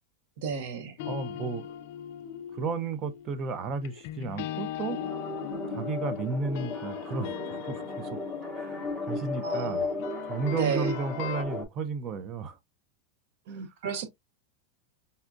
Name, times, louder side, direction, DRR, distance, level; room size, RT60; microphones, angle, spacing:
voice 1, 0.4-0.9 9.4-9.9 10.5-10.9 13.5-14.1, right 6 dB, 60° right, 0.9 m, -33 dB
sound 1, 1.0-11.4, left 12 dB, 55° left, 0.4 m, -40 dB
voice 2, 1.0-1.7 2.5-5.0 5.7-8.2 8.5-9.8 10.3-12.6, right 4 dB, 30° right, 0.5 m, -33 dB
sound 2, 4.9-11.6, left 2 dB, 5° right, 1.0 m, -35 dB
5.3 x 2.3 x 2.5 m
supercardioid pair, 160°, 0 cm